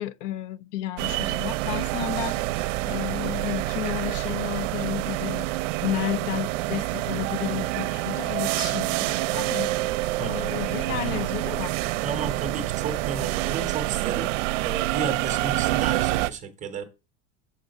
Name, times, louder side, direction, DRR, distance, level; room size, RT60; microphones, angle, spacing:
voice 1, 0.0-5.5 5.8-9.7 10.2-11.7, left 14 dB, 70° left, 0.5 m, -32 dB
sound 1, 1.0-16.3, right 18 dB, 75° right, 0.6 m, -27 dB
voice 2, 10.2-10.6 12.0-14.3 14.6-16.8, right 6 dB, 20° right, 0.7 m, -32 dB
7.3 x 3.6 x 5.1 m
supercardioid pair, 165°, 38 cm